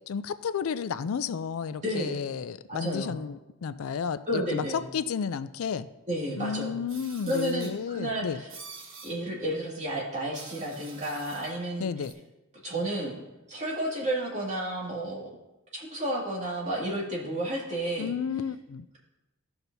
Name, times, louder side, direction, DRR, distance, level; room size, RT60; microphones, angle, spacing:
voice 1, 0.1-5.9 6.4-8.4 11.8-12.1 18.0-19.0, left 6 dB, 85° left, 14 dB, 0.4 m, -32 dB
voice 2, 1.8-2.2 2.7-3.1 4.3-4.8 6.1-6.8 7.3-8.5 9.0-11.9 12.6-13.2 13.5-15.3 15.7-18.1, right 1 dB, 35° right, -4 dB, 2.2 m, -31 dB
sound 1, 6.9-7.8 8.5-9.1 10.3-11.5 12.0-12.1, right 4 dB, 65° right, 1.4 m, -46 dB
15.5 x 5.8 x 2.7 m, 1.0 s
head